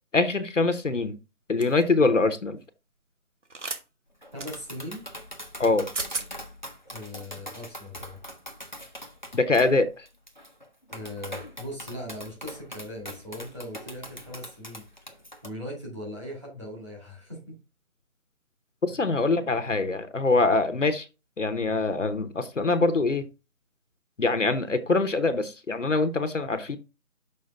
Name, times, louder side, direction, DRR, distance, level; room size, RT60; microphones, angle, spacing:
voice 1, 0.1-1.2 1.5-2.6 5.6-5.9 9.3-10.1 18.8-21.1 21.4-23.2 24.2-26.8, left 3 dB, 60° left, 0.9 m, -24 dB
sound 1, 1.6-1.8 3.5-3.8 4.4-4.5 5.6-5.7 5.9-6.3, right 3 dB, 55° right, 1.2 m, -33 dB
Tap, 4.2-15.5, equal, 35° left, 0.7 m, -42 dB
voice 2, 4.3-5.0 6.9-8.2 10.9-14.8 15.4-17.6 18.9-19.0, left 1 dB, 20° right, 2.0 m, -39 dB
6.6 x 5.0 x 3.5 m
figure-of-eight pair, 180°, 42 cm